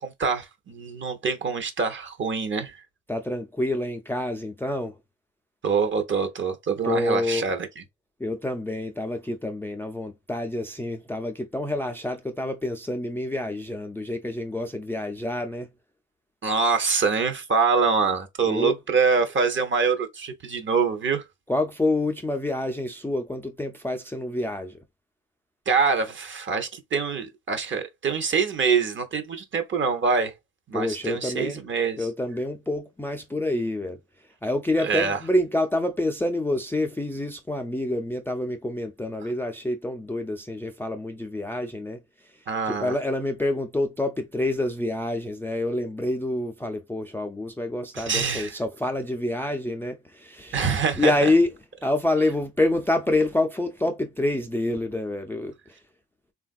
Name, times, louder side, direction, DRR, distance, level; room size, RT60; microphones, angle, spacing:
voice 1, 0.0-2.8 5.6-7.8 16.4-21.2 25.7-30.3 30.7-32.1 34.8-35.2 42.5-42.9 47.9-48.5 50.5-51.1, right 5 dB, 40° right, 0.8 m, -25 dB
voice 2, 3.1-5.0 6.8-7.5 8.2-15.7 18.4-18.8 21.5-24.8 30.7-31.6 32.0-34.0 34.4-42.0 42.6-51.5 51.8-55.8, left 1 dB, 10° left, 0.4 m, -27 dB
3.3 x 2.4 x 2.3 m
cardioid pair, 90°, 30 cm